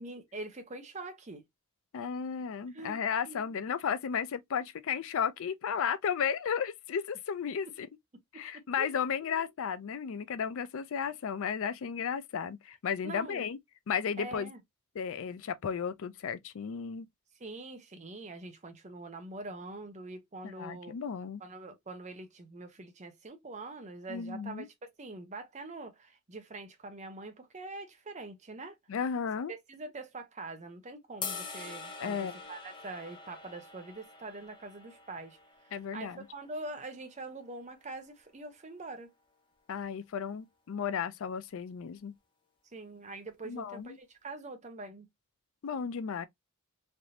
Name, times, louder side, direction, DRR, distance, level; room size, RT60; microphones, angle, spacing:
voice 1, 0.0-1.4 2.7-3.0 3.3-3.5 8.3-8.9 9.2-9.4 13.0-13.5 14.2-14.6 17.4-21.0 21.4-28.8 29.5-39.1 42.7-45.1, right 2 dB, 35° right, 0.7 m, -44 dB
voice 2, 1.9-7.9 8.3-13.6 13.9-14.5 15.0-17.1 20.6-21.4 24.1-24.7 28.9-29.5 32.0-32.4 35.7-36.2 39.7-42.1 43.4-44.0 45.6-46.3, left 7 dB, 65° left, 0.4 m, -34 dB
sound 1, 31.2-37.4, left 4 dB, 20° left, 0.7 m, -45 dB
3.3 x 2.6 x 2.7 m
head